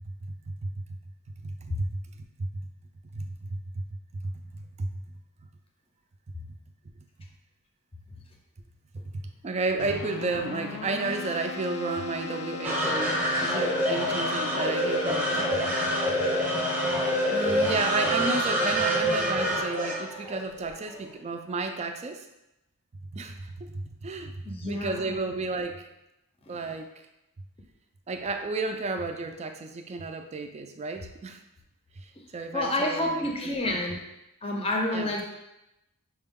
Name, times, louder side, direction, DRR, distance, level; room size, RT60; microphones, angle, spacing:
voice 1, 1.4-2.0 2.4-2.6 3.1-3.8 4.2-4.9 9.1-15.6 16.2-16.3 17.3-22.2 23.1-25.8 26.5-26.9 28.1-31.4 32.0-33.8 34.9-35.1, right 3 dB, 30° right, 5 dB, 0.4 m, -32 dB
Keyboard (musical), 9.8-18.8, left 3 dB, 65° left, 0.3 m, -37 dB
sound 1, 12.6-21.0, equal, 10° right, 0.7 m, -27 dB
voice 2, 24.4-25.0 26.5-26.6 32.5-34.0 34.4-35.2, left 1 dB, 25° left, 1 dB, 0.6 m, -29 dB
6.0 x 2.2 x 3.5 m, 0.90 s
head